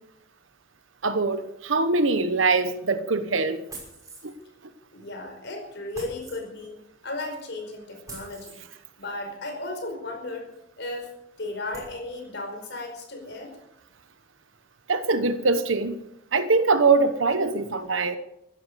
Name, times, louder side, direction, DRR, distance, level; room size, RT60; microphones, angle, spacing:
voice 1, 1.0-3.6 4.2-4.3 14.9-16.0 16.3-18.2, right 3 dB, 80° right, 11 dB, 1.1 m, -23 dB
sound 1, 3.7-4.4 5.9-6.4 8.1-8.6 10.5-10.6 11.1-11.2 11.7-12.0, right 2 dB, 15° right, 6.0 m, -43 dB
voice 2, 4.9-6.8 7.0-8.6 9.0-10.5 10.8-11.1 11.4-13.5, left 2 dB, 60° left, 4 dB, 5.1 m, -35 dB
15.0 x 12.5 x 6.8 m, 0.84 s
head